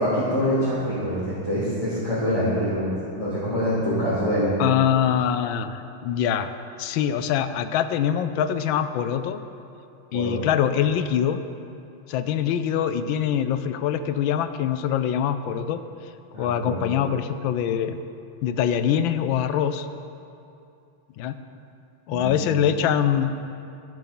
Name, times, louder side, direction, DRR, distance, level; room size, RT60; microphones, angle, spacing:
voice 1, 0.0-4.5 10.1-10.4 16.3-17.0 22.1-22.6, equal, 15° right, -13 dB, 3.1 m, -25 dB
voice 2, 4.6-6.5 6.8-9.4 10.1-11.4 12.1-15.8 16.4-18.0 18.4-19.9 21.2-21.3 22.1-23.4, left 9 dB, 75° left, 10 dB, 1.2 m, -24 dB
14.0 x 7.7 x 5.5 m, 2.6 s
omnidirectional pair, 2.4 m